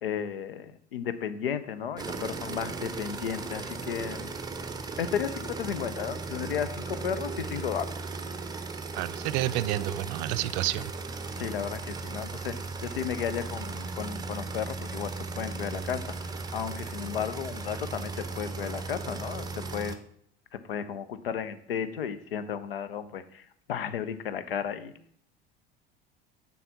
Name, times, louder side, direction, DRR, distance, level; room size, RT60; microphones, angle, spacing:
voice 1, 0.0-4.3 5.0-7.9 11.4-12.5 12.8-16.0 16.5-20.0 20.7-24.9, left 8 dB, 70° left, 12 dB, 0.7 m, -34 dB
sound 1, 2.0-20.0, right 3 dB, 15° right, 0.8 m, -37 dB
voice 2, 8.9-10.9, right 15 dB, 50° right, 14 dB, 0.4 m, -30 dB
7.5 x 5.8 x 5.6 m, 0.65 s
figure-of-eight pair, 70°, 29 cm